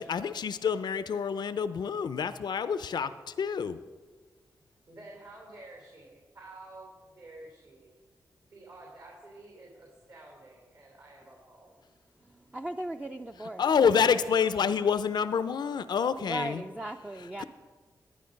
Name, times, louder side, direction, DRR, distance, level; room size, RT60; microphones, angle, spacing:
voice 1, 0.0-3.8 13.6-16.6 17.4-17.5, left 6 dB, 70° left, 12 dB, 0.5 m, -27 dB
voice 2, 4.9-8.0 8.5-11.7, right 2 dB, 60° right, -1 dB, 3.2 m, -50 dB
voice 3, 12.5-13.6 16.2-17.4, right 1 dB, 15° right, 5 dB, 0.5 m, -37 dB
12.0 x 9.4 x 5.2 m, 1.5 s
cardioid pair, 60°, 8 cm